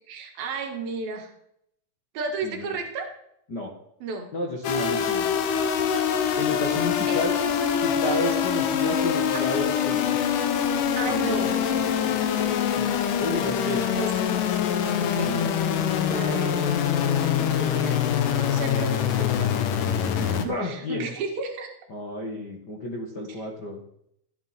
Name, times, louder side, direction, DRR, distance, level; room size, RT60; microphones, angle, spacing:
voice 1, 0.1-1.3 2.2-3.1 4.0-4.3 4.9-5.1 7.1-7.7 9.3-9.5 11.0-11.5 13.4-13.5 13.9-14.4 15.0-15.3 16.1-16.8 17.1-18.0 18.3-19.5 20.2-21.7, right 4 dB, 80° right, 2 dB, 3.7 m, -33 dB
voice 2, 4.3-5.4 6.4-7.3 7.8-10.2 11.1-13.8 15.2-16.4 20.5-21.1 21.9-23.8, left 2 dB, 45° left, -1 dB, 1.4 m, -32 dB
sound 1, 4.6-20.5, left 8 dB, 70° left, 2.4 m, -24 dB
15.0 x 10.5 x 4.4 m, 0.74 s
omnidirectional pair, 4.2 m